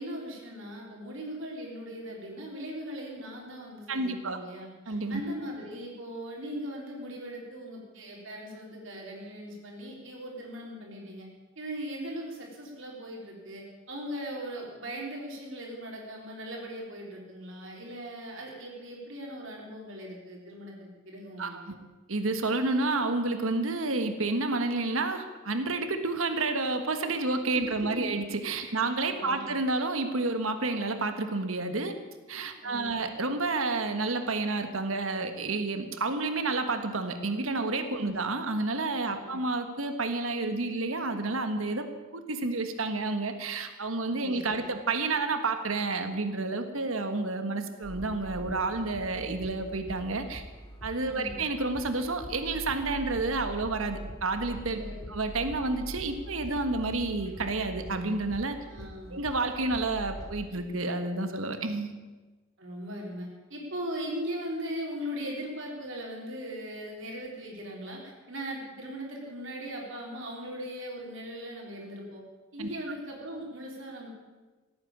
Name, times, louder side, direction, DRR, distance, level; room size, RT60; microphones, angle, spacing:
voice 1, 0.0-11.3 11.6-21.8 27.5-28.0 28.6-28.8 29.1-29.5 32.6-33.0 37.9-38.2 39.2-39.4 44.2-44.7 51.1-51.4 54.8-55.1 58.6-59.2 62.6-72.2 72.5-74.1, equal, 65° right, -2 dB, 3.9 m, -39 dB
voice 2, 3.9-4.4 4.9-5.2 21.4-21.7 22.1-32.0 32.3-50.4 50.8-54.8 55.1-58.6 59.1-61.9 72.6-72.7, right 3 dB, 85° right, 7 dB, 1.5 m, -30 dB
sound 1, 47.8-60.4, equal, 20° left, 2.9 m, -43 dB
17.5 x 9.5 x 8.7 m, 1.3 s
head